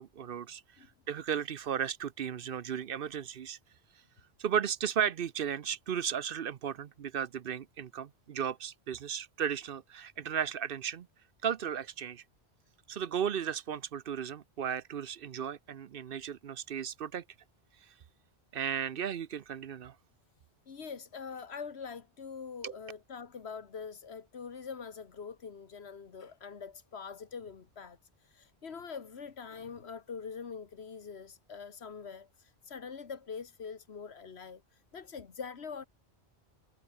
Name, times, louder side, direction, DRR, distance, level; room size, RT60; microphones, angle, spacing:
voice 1, 0.0-0.6 1.1-3.6 4.4-11.1 11.4-12.2 12.9-17.2 18.5-19.9 22.6-22.7, right 8 dB, 60° right, 0.9 m, -35 dB
voice 2, 20.7-28.0 28.3-32.3 32.7-34.6 34.9-35.9, left 6 dB, 80° left, 1.7 m, -44 dB
omnidirectional pair, 1.1 m